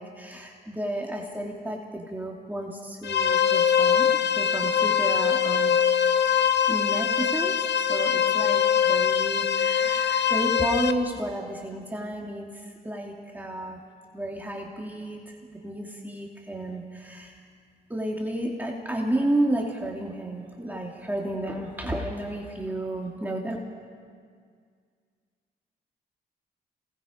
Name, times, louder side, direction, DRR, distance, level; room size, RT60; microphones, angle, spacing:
voice 1, 0.0-4.1 4.3-5.8 6.7-13.8 14.1-17.4 17.9-23.6, right 1 dB, 10° right, -1 dB, 2.7 m, -32 dB
sound 1, 3.0-10.9, left 8 dB, 70° left, 0.9 m, -23 dB
28.0 x 19.5 x 5.2 m, 2.1 s
cardioid pair, 70°, 18 cm